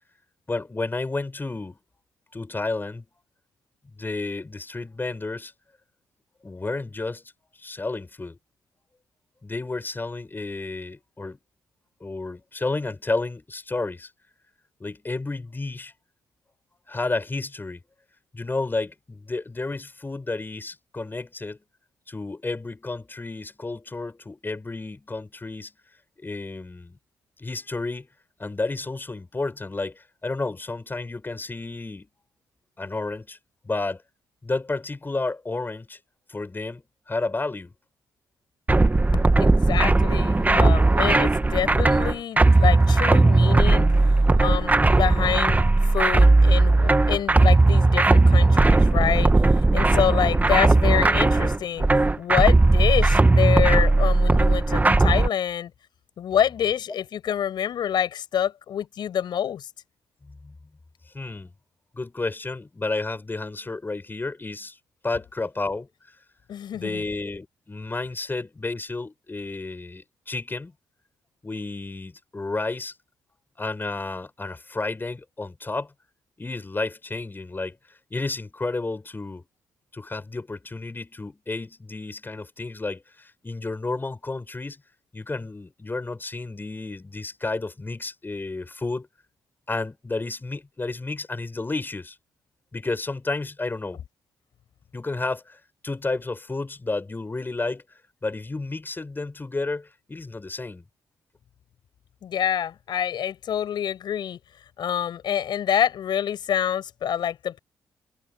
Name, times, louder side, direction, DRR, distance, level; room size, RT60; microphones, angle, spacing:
voice 1, 0.5-1.8 2.3-3.1 3.9-5.5 6.4-7.3 7.6-8.4 9.4-11.4 12.0-14.1 14.8-15.9 16.9-17.8 18.3-21.6 22.1-25.7 26.2-27.0 27.4-28.1 28.4-32.1 32.8-33.4 33.6-34.0 34.4-36.0 36.3-36.8 37.1-37.7 60.2-60.5 61.1-61.5 61.9-64.8 65.0-65.9 66.7-70.7 71.4-72.9 73.6-75.9 76.4-77.8 78.1-79.4 79.9-84.8 85.1-89.1 89.7-92.2 92.7-94.0 94.9-97.8 98.2-100.8, left 3 dB, 25° left, 6.7 m, -31 dB
sound 1, 38.7-55.3, right 2 dB, 20° right, 1.5 m, -18 dB
voice 2, 39.4-43.9 44.4-49.3 49.7-51.9 52.2-55.7 56.2-59.7 66.5-67.0 102.2-104.4 104.8-107.6, left 9 dB, 70° left, 5.8 m, -26 dB
supercardioid pair, 60°, 8 cm